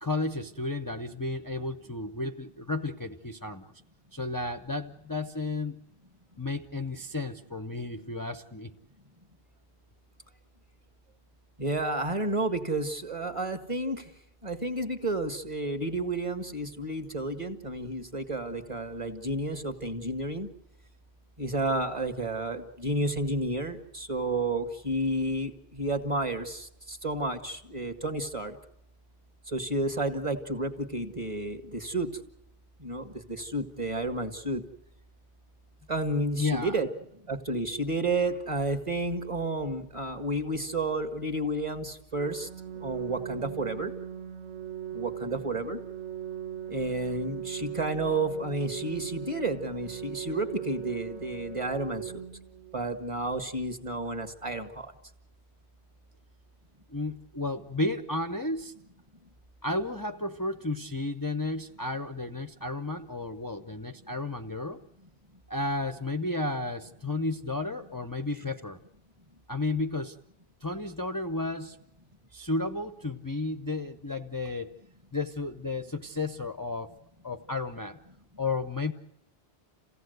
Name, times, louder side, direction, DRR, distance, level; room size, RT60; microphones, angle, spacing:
voice 1, 0.0-3.7 4.1-5.8 6.4-8.7 36.4-36.8 56.9-58.7 59.6-64.8 65.5-68.8 69.5-70.2 70.6-71.8 72.3-74.7 75.1-76.9 77.2-78.0 78.4-78.9, left 2 dB, 20° left, 7 dB, 0.7 m, -32 dB
voice 2, 11.6-14.1 14.4-20.5 21.4-28.6 29.5-32.1 32.8-34.6 35.9-36.9 37.2-42.5 42.8-43.9 44.9-45.8 46.7-52.2 52.7-54.9, right 2 dB, 25° right, 7 dB, 1.8 m, -31 dB
Organ, 42.1-53.1, right 9 dB, 85° right, 1.8 m, -39 dB
28.0 x 17.0 x 8.0 m, 0.85 s
omnidirectional pair, 1.2 m